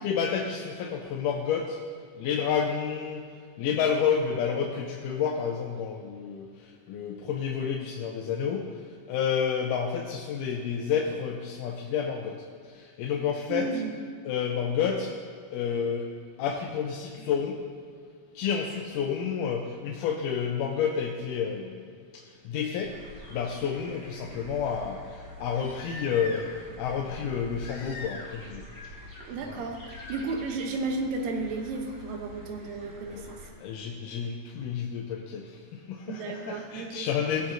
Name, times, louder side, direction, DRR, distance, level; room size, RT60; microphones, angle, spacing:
voice 1, 0.0-1.8 2.2-3.3 3.6-8.7 9.1-12.4 12.7-13.7 14.3-15.2 15.5-16.1 16.4-17.6 18.4-21.8 22.1-23.0 23.3-26.5 26.8-28.6 29.5-29.6 33.1-33.2 33.6-37.5, left 7 dB, 80° left, 1 dB, 2.1 m, -30 dB
voice 2, 13.5-14.0 17.2-17.3 29.2-33.5 36.1-37.1, right 3 dB, 85° right, 3 dB, 2.6 m, -33 dB
Crying sobbing, 22.6-22.7 25.4-26.7 27.6-28.5 28.7-29.2 29.9-30.2 31.8-31.9, left 2 dB, 50° left, 1.5 m, -43 dB
sound 1, 22.8-33.5, equal, 20° left, 2.6 m, -47 dB
18.5 x 7.0 x 2.6 m, 2.1 s
omnidirectional pair, 3.9 m